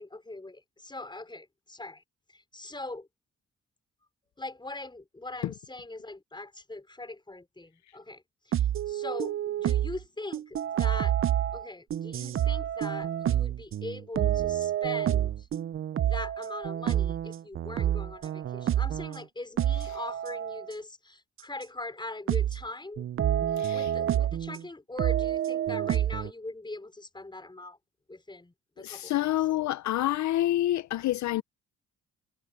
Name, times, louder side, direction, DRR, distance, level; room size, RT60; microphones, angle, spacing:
voice 1, 0.0-2.0 2.3-3.1 4.4-11.2 11.5-15.5 16.0-23.1 23.7-27.8 28.1-29.3, left 2 dB, 15° left, 5.4 m, -41 dB
sound 1, 8.5-10.0 10.3-19.2 19.6-20.7 21.6-21.7 22.3-22.6 23.0-24.6 25.0-26.3, right 11 dB, 45° right, 0.6 m, -28 dB
voice 2, 23.6-23.9 28.8-31.4, left 14 dB, 65° left, 0.6 m, -28 dB
cardioid pair, 90°, 30 cm